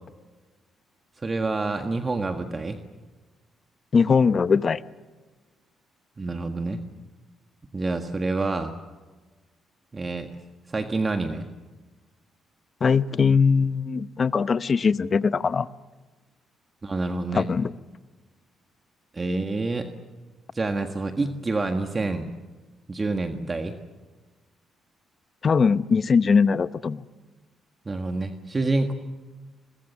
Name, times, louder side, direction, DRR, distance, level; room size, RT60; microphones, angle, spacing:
voice 1, 1.2-2.8 6.2-6.8 7.7-8.7 9.9-10.3 10.7-11.5 16.8-17.5 19.1-19.9 20.5-22.3 22.9-23.7 27.8-28.9, right 3 dB, 30° right, 6 dB, 1.6 m, -27 dB
voice 2, 3.9-4.8 12.8-15.7 17.3-17.7 25.4-27.1, left 5 dB, 40° left, 15 dB, 0.8 m, -21 dB
29.5 x 22.0 x 7.2 m, 1.3 s
cardioid pair, 90°, 0 cm